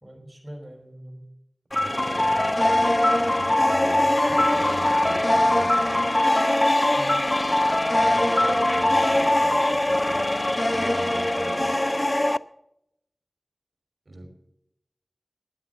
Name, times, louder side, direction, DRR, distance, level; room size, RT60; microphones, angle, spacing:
voice 1, 0.0-1.3 6.9-7.2, right 1 dB, 20° right, 1 dB, 4.6 m, -42 dB
sound 1, 1.7-12.4, left 1 dB, 30° left, 0.4 m, -21 dB
voice 2, 1.7-6.0 7.9-10.2 10.7-11.8 14.0-14.3, right 1 dB, 65° right, 5 dB, 3.3 m, -39 dB
13.0 x 9.7 x 6.7 m, 0.78 s
wide cardioid pair, 55°, 0 cm